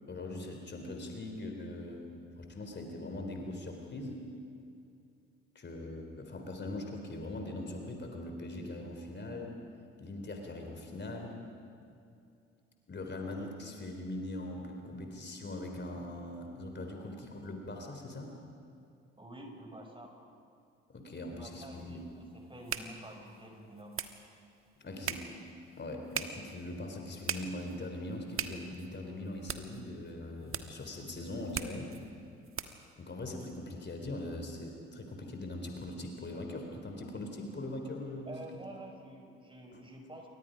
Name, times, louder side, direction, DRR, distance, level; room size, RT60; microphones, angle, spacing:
voice 1, 0.1-4.2 5.6-9.6 10.0-11.4 12.9-18.3 20.9-22.0 24.8-25.3 25.8-31.9 33.0-38.7, left 1 dB, 35° left, 3 dB, 3.7 m, -41 dB
voice 2, 19.2-20.1 21.4-24.0 38.3-40.3, right 1 dB, 15° right, 2 dB, 5.8 m, -48 dB
sound 1, 21.3-32.9, right 7 dB, 40° right, 1.5 m, -43 dB
28.5 x 23.5 x 5.2 m, 2.5 s
figure-of-eight pair, 50°, 33 cm